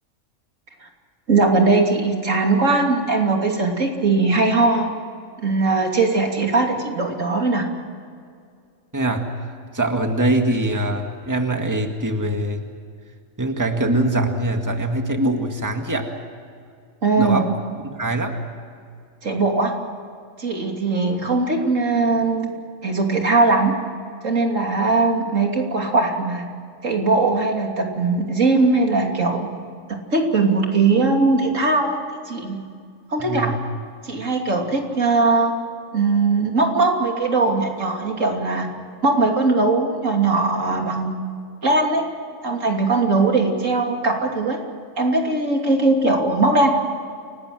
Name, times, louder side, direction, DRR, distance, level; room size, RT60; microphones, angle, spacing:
voice 1, 1.3-4.9 5.4-7.6 17.0-17.4 19.2-19.7 20.4-22.5 22.8-23.8 24.2-26.4 26.8-29.5 30.1-32.0 32.3-32.6 33.1-33.5 34.0-35.5 35.9-38.7 39.0-41.2 41.6-42.0 42.4-44.6 45.0-46.7, right 3 dB, 75° right, 2 dB, 3.3 m, -20 dB
voice 2, 8.9-9.5 9.7-12.7 13.4-16.1 17.2-17.5 17.8-18.4 33.2-33.7, right 1 dB, 15° right, 4 dB, 2.0 m, -23 dB
29.0 x 19.0 x 7.9 m, 2.3 s
omnidirectional pair, 1.3 m